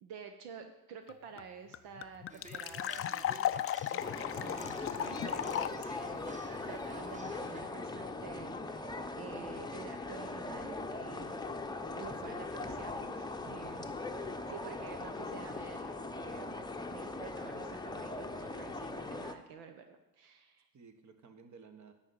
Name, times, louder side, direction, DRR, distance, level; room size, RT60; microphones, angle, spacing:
voice 1, 0.0-3.6 3.9-11.5 11.8-13.8 14.2-16.5 16.9-20.7, right 6 dB, 80° right, 6 dB, 1.0 m, -50 dB
sound 1, 1.1-1.2 1.4-1.5 1.7-5.8, left 11 dB, 35° left, 0.4 m, -35 dB
sound 2, 2.3-7.6, right 2 dB, 20° right, 1.3 m, -52 dB
sound 3, 4.0-19.3, left 3 dB, 10° left, 0.8 m, -40 dB
voice 2, 12.0-12.7 13.5-13.7 20.7-21.9, right 5 dB, 45° right, 7 dB, 1.4 m, -54 dB
10.5 x 4.5 x 7.9 m, 0.96 s
supercardioid pair, 80°, 40 cm